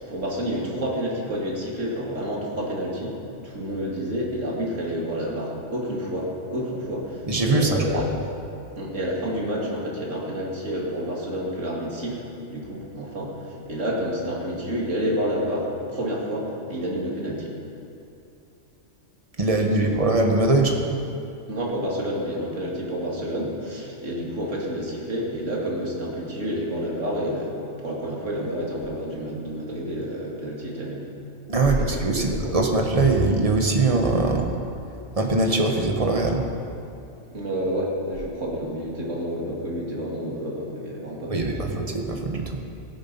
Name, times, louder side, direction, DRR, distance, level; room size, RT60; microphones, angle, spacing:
voice 1, 0.0-3.2 3.4-8.1 8.8-12.2 12.5-17.5 19.8-19.9 21.5-31.1 31.6-32.6 37.3-42.1, equal, 75° right, -3 dB, 2.7 m, -29 dB
voice 2, 7.3-8.0 19.4-21.0 31.5-34.5 35.1-36.5 41.3-42.6, right 2 dB, 30° right, 2 dB, 1.3 m, -22 dB
16.5 x 9.6 x 5.6 m, 2.7 s
omnidirectional pair, 1.3 m